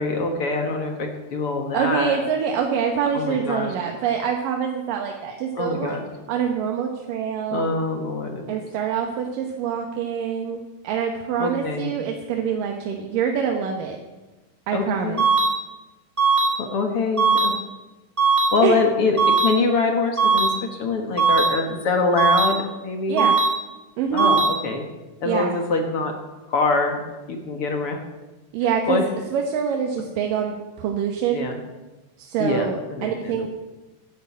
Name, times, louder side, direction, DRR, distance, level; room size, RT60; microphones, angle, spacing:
voice 1, 0.0-2.2 3.1-3.7 5.6-6.0 7.5-8.5 11.4-11.9 14.7-15.2 16.6-17.5 18.5-20.5 20.8-23.2 24.1-24.8 25.2-26.1 26.5-27.0 27.3-28.0 28.9-29.0 31.3-31.6 32.4-33.5, left 3 dB, 50° left, 4 dB, 2.1 m, -24 dB
voice 2, 1.7-6.0 6.3-7.7 8.5-14.0 14.7-15.3 18.6-18.8 23.1-23.3 24.0-24.3 25.2-25.6 28.5-29.0 29.3-31.5 32.2-33.5, right 7 dB, 80° right, 2 dB, 2.8 m, -25 dB
sound 1, 15.2-15.5 16.2-16.5 17.2-17.5 18.2-18.5 19.2-19.5 20.2-20.5 21.2-21.5 22.2-22.5 23.2-23.5 24.2-24.5, right 4 dB, 15° right, 3.3 m, -18 dB
12.0 x 11.0 x 8.4 m, 1.1 s
omnidirectional pair, 3.8 m